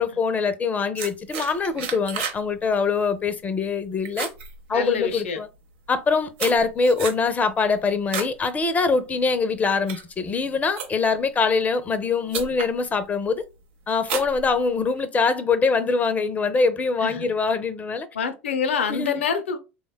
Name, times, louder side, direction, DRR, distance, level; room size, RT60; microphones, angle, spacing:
voice 1, 0.0-4.3 4.7-5.5 5.9-13.4 13.9-18.1 18.9-19.3, left 4 dB, 25° left, 0.5 m, -23 dB
sound 1, 1.0-2.4 2.7-3.1 3.5-3.8 4.0-5.2 5.9-8.4 8.8-9.1 9.6-11.2 11.9-12.0 12.3-12.7 13.2-13.6 14.0-15.0, right 6 dB, 75° right, 0.6 m, -33 dB
voice 2, 4.7-5.4 17.0-17.3 18.1-19.6, left 6 dB, 90° left, 0.5 m, -26 dB
3.2 x 2.1 x 2.2 m
hypercardioid pair, 90°, 6 cm